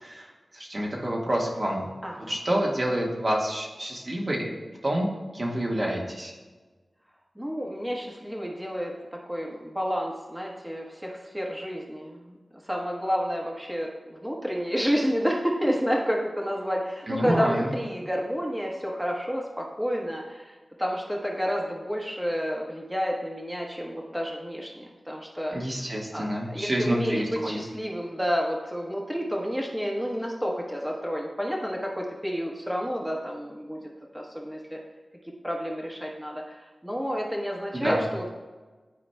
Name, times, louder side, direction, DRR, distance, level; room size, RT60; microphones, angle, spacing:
voice 1, 0.0-1.8 2.3-4.5 4.8-6.3 17.1-17.7 25.5-27.6 37.7-38.0, right 1 dB, 45° right, -3 dB, 1.5 m, -28 dB
voice 2, 2.0-2.3 7.4-12.4 12.7-25.6 26.1-33.8 34.1-34.8 35.3-38.3, equal, 10° right, -2 dB, 1.2 m, -30 dB
12.0 x 4.2 x 2.2 m, 1.3 s
cardioid pair, 40°, 0 cm